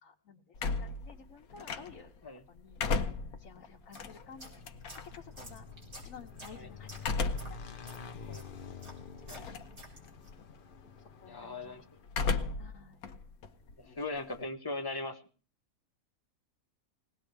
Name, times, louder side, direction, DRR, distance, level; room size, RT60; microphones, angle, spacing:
voice 1, 0.0-2.1 2.5-2.9 3.4-4.7 5.1-5.6 6.0-7.1 7.4-7.6 8.1-8.4 9.3-9.6 11.2-11.8 12.6-13.0, left 6 dB, 65° left, -2 dB, 1.7 m, -53 dB
sound 1, 0.6-2.2 2.6-5.2 7.0-7.7 8.2-8.3 9.3-9.8 10.1-10.5 12.1-12.7 13.0-14.4, left 4 dB, 85° left, 1.4 m, -34 dB
sound 2, 3.7-10.4, left 1 dB, 70° right, 5.1 m, -51 dB
Motorcycle / Engine, 5.1-12.4, left 6 dB, 45° left, 0.9 m, -50 dB
voice 2, 11.2-11.8 13.8-15.2, left 2 dB, 15° left, 4 dB, 1.1 m, -39 dB
20.5 x 18.0 x 3.4 m, 0.39 s
omnidirectional pair, 1.5 m